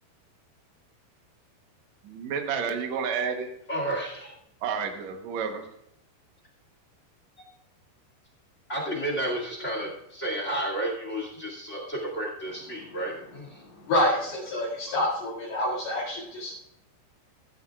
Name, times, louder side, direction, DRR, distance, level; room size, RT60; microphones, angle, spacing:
voice 1, 2.0-3.5 4.6-5.7, right 6 dB, 85° right, 4 dB, 1.5 m, -30 dB
voice 2, 3.7-4.3 8.7-13.6 14.9-15.0, right 1 dB, 25° left, 0 dB, 1.6 m, -32 dB
voice 3, 13.6-16.6, left 1 dB, 70° left, -8 dB, 4.1 m, -27 dB
15.0 x 14.0 x 2.4 m, 0.80 s
omnidirectional pair, 4.9 m